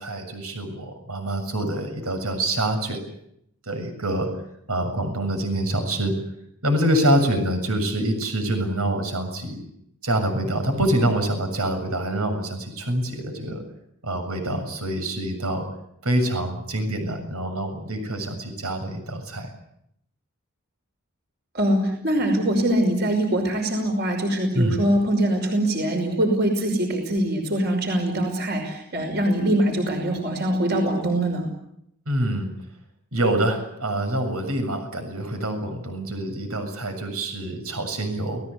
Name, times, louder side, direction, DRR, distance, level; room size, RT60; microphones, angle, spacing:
voice 1, 0.0-3.0 3.7-4.3 4.7-6.1 6.6-9.6 10.0-13.6 14.0-15.6 16.0-19.5 24.5-24.8 32.1-32.5 33.1-38.4, right 1 dB, 85° right, 6 dB, 7.1 m, -25 dB
voice 2, 21.5-31.5, right 1 dB, 45° right, 4 dB, 5.5 m, -23 dB
29.5 x 18.0 x 8.4 m, 0.77 s
head